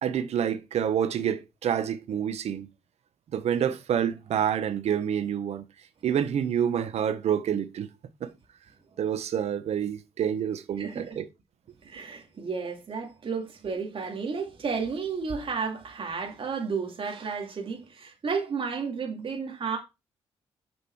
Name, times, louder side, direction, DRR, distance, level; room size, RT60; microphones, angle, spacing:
voice 1, 0.0-2.7 3.3-5.6 6.0-7.9 8.2-8.3 9.0-11.3, right 9 dB, 70° right, 1.1 m, -28 dB
voice 2, 10.8-11.2 11.8-19.8, right 5 dB, 55° right, 2.6 m, -32 dB
7.3 x 5.2 x 4.7 m
supercardioid pair, 55°, 11 cm